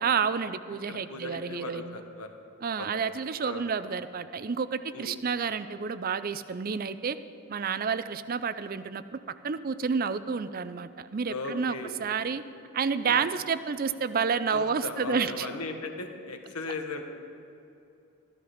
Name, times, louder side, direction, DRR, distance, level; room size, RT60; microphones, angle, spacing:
voice 1, 0.0-2.0 2.6-7.2 7.5-9.2 9.4-11.7 12.0-12.4 12.7-15.5, right 6 dB, 40° right, 13 dB, 0.4 m, -30 dB
voice 2, 0.9-2.3 2.8-3.1 3.4-3.7 4.9-5.2 11.3-11.9 13.0-13.3 14.5-17.0, left 3 dB, 90° left, 5 dB, 1.3 m, -37 dB
14.5 x 13.0 x 5.0 m, 2.7 s
head